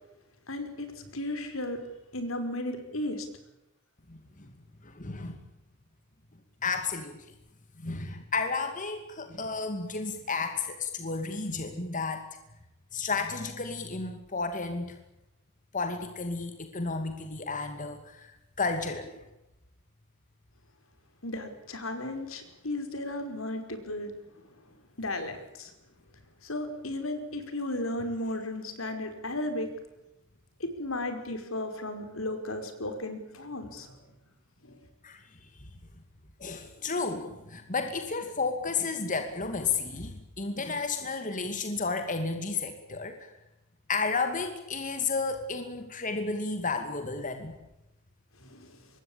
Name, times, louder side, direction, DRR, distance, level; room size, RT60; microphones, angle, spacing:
voice 1, 0.5-1.8 2.1-3.3 21.2-24.1 25.0-25.7 26.4-29.7 30.6-34.0 34.6-34.8 48.4-48.7, left 1 dB, 80° left, 7 dB, 5.2 m, -35 dB
voice 2, 4.8-5.4 6.6-7.2 7.8-12.2 12.9-14.9 15.7-18.3 18.6-19.1 35.0-35.2 36.4-43.3 43.9-47.5, left 4 dB, 40° left, 6 dB, 2.5 m, -32 dB
25.0 x 22.0 x 8.8 m, 0.92 s
head